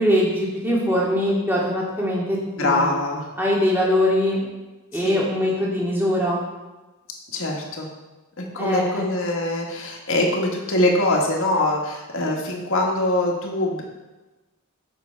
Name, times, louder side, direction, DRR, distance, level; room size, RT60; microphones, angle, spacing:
voice 1, 0.0-2.9 3.4-4.4 4.9-6.4 8.6-9.0, left 1 dB, 10° right, -5 dB, 2.1 m, -22 dB
voice 2, 2.6-3.3 4.9-5.2 7.3-7.9 8.4-13.8, left 1 dB, 60° left, 0 dB, 1.6 m, -23 dB
7.8 x 6.2 x 4.6 m, 1.1 s
head